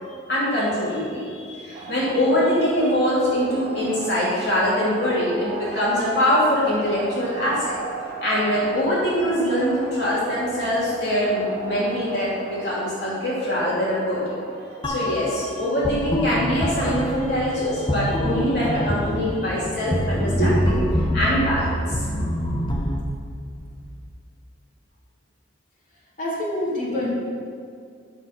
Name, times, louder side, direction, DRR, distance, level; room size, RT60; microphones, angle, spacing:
voice 1, 0.3-7.8 8.2-14.2 14.8-20.8 21.1-22.0, equal, 60° left, -8 dB, 2.7 m, -23 dB
sound 1, 1.7-17.5, right 3 dB, 45° right, 1.6 m, -37 dB
sound 2, 14.8-23.0, equal, 25° left, 1.0 m, -25 dB
voice 2, 26.2-27.1, left 1 dB, 45° left, -8 dB, 2.9 m, -26 dB
11.5 x 6.2 x 5.9 m, 2.3 s
head